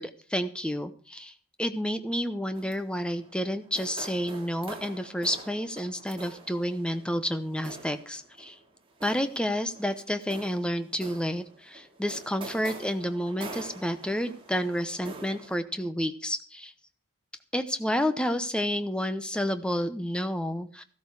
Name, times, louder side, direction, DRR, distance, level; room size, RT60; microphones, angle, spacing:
voice 1, 0.0-8.6 9.0-16.7 17.5-20.8, equal, 5° left, 10 dB, 0.8 m, -30 dB
sound 1, 2.5-15.6, right 3 dB, 25° right, 2.4 m, -46 dB
14.0 x 13.0 x 4.8 m, 0.40 s
head